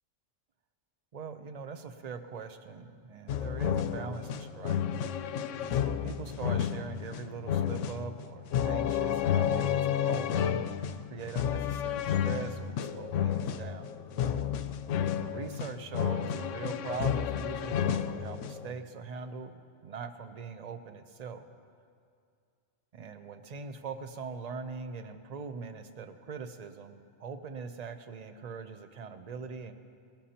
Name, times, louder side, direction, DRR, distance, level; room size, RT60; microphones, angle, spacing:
voice 1, 1.1-4.8 5.8-10.7 11.1-13.9 15.2-19.5 19.8-21.4 22.9-29.7, right 5 dB, 40° right, 9 dB, 0.7 m, -41 dB
sound 1, 3.3-18.7, left 9 dB, 80° left, 0.9 m, -31 dB
20.5 x 14.5 x 2.9 m, 2.3 s
omnidirectional pair, 1.3 m